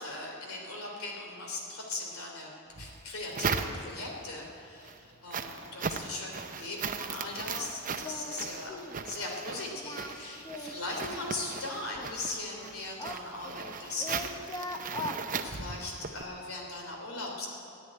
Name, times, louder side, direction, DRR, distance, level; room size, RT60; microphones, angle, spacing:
voice 1, 0.0-2.5 2.8-8.7 9.0-14.4 15.4-17.5, left 2 dB, 70° left, 0 dB, 3.3 m, -39 dB
sound 1, 2.7-4.2 4.6-16.2, right 5 dB, 40° right, 0.7 m, -38 dB
Singing, 7.4-7.7 8.0-8.4 8.7-9.0 9.7-11.3 12.0-13.7 14.0-15.2, left 2 dB, 20° left, 1.1 m, -40 dB
13.5 x 9.3 x 9.9 m, 2.5 s
head